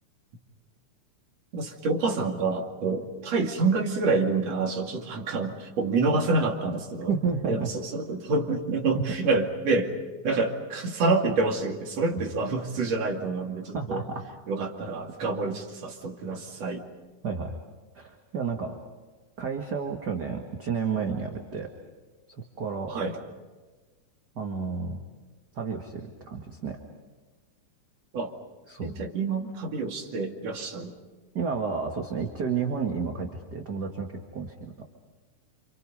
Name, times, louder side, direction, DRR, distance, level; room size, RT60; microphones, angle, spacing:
voice 1, 1.5-7.1 7.5-9.9 10.2-14.0 14.5-16.8 22.9-23.2 28.1-28.3 28.8-31.0, right 3 dB, 55° right, 2 dB, 3.5 m, -27 dB
voice 2, 7.1-7.7 8.9-9.0 13.7-14.2 17.2-17.6 17.9-18.8 19.4-21.7 22.6-22.9 24.4-25.0 25.5-26.8 28.7-28.9 31.3-34.9, right 5 dB, 35° right, 3 dB, 2.1 m, -31 dB
29.5 x 27.0 x 5.4 m, 1.3 s
omnidirectional pair, 3.5 m